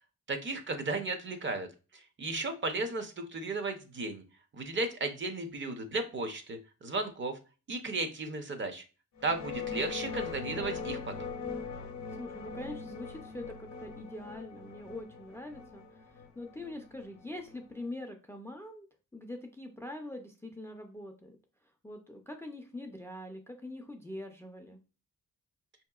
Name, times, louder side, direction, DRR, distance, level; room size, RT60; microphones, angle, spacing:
voice 1, 0.3-1.7 1.9-4.2 4.5-6.6 6.8-7.4 7.7-8.8 9.2-11.3, right 3 dB, 40° right, 7 dB, 0.6 m, -34 dB
sound 1, 9.2-17.8, left 5 dB, 65° left, 0.6 m, -41 dB
voice 2, 12.1-18.9 19.1-21.4 21.8-24.8, left 1 dB, 10° left, 3 dB, 0.4 m, -43 dB
5.1 x 2.8 x 2.3 m, 0.33 s
wide cardioid pair, 145°, 30 cm